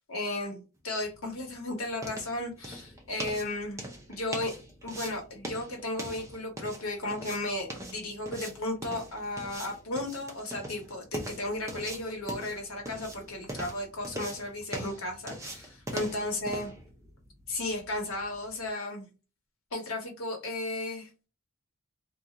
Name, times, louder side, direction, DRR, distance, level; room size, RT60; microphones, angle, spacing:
voice 1, 0.0-3.8 4.1-4.5 4.8-16.7 17.5-19.1 19.7-21.3, left 2 dB, 70° left, 2 dB, 1.0 m, -34 dB
sound 1, 0.9-18.7, right 1 dB, 15° right, 0.4 m, -42 dB
2.4 x 2.3 x 2.8 m, 0.31 s
head